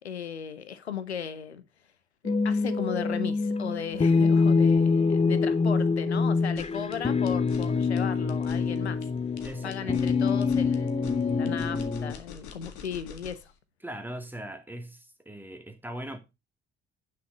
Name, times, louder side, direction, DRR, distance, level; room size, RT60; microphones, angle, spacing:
voice 1, 0.0-1.6 2.2-9.0 9.6-13.5, left 8 dB, 90° left, 0.8 m, -36 dB
sound 1, 2.2-12.1, left 4 dB, 20° left, 0.9 m, -25 dB
sound 2, 6.4-13.5, left 7 dB, 65° left, 1.8 m, -46 dB
voice 2, 9.4-10.3 13.8-16.2, right 1 dB, 5° right, 2.6 m, -40 dB
9.5 x 6.5 x 5.3 m
figure-of-eight pair, 45°, 32 cm